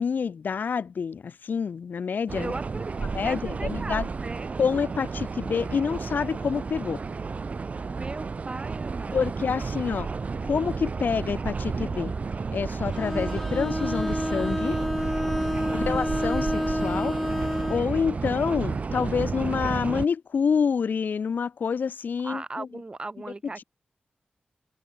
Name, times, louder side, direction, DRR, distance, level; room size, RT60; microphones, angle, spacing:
voice 1, 0.0-2.5 3.1-4.1 4.6-7.0 9.1-10.1 10.4-12.1 12.5-14.8 15.7-17.2 17.7-22.7, left 6 dB, 75° left, 0.8 m, -27 dB
sound 1, 2.3-20.1, right 4 dB, 45° right, 0.7 m, -32 dB
voice 2, 2.4-4.5 7.9-9.6 15.7-16.0 22.2-23.6, right 3 dB, 30° right, 2.0 m, -38 dB
Bowed string instrument, 12.9-17.9, left 1 dB, 10° left, 0.6 m, -29 dB
wide cardioid pair, 145°, 3 cm